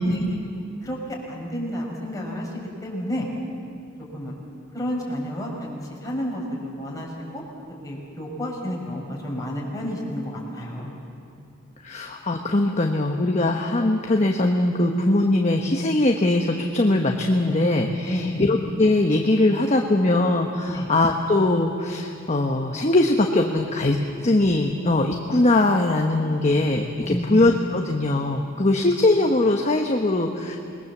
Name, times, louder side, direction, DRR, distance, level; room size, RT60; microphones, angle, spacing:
voice 1, 0.0-0.4 0.8-1.0 1.3-2.5 2.8-3.3 4.1-4.3 4.7-5.7 6.0-7.4 7.8-10.9 18.0-18.5 20.6-20.9 27.0-27.4, equal, 15° left, -3 dB, 5.5 m, -30 dB
voice 2, 11.8-30.6, left 2 dB, 35° left, 3 dB, 1.2 m, -21 dB
27.5 x 21.0 x 7.3 m, 2.5 s
head